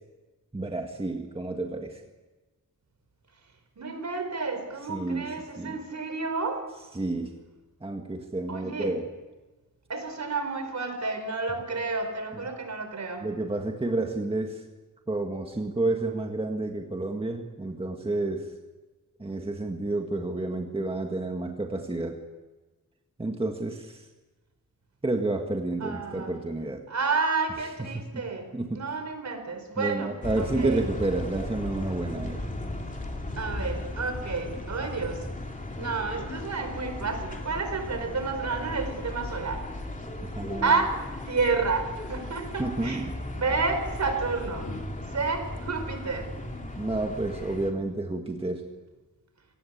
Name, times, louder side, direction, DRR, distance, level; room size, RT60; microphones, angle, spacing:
voice 1, 0.5-2.0 4.9-5.3 5.6-5.8 6.9-7.3 7.8-9.1 13.2-14.6 15.1-18.5 19.2-22.2 23.2-24.0 25.0-26.8 28.1-28.2 28.5-28.8 29.8-32.4 40.2-40.8 42.6-43.1 46.8-48.6, right 2 dB, 15° right, 3 dB, 1.7 m, -30 dB
voice 2, 3.8-6.6 8.5-8.9 9.9-13.2 25.8-26.3 26.9-28.5 28.7-30.8 33.4-35.3 35.8-39.7 40.6-41.0 41.3-43.0 43.3-44.7 45.1-46.3, right 4 dB, 60° right, 7 dB, 4.5 m, -30 dB
sound 1, 30.2-47.7, left 1 dB, 25° left, 3.1 m, -36 dB
27.0 x 18.5 x 8.6 m, 1.2 s
wide cardioid pair, 155°, 32 cm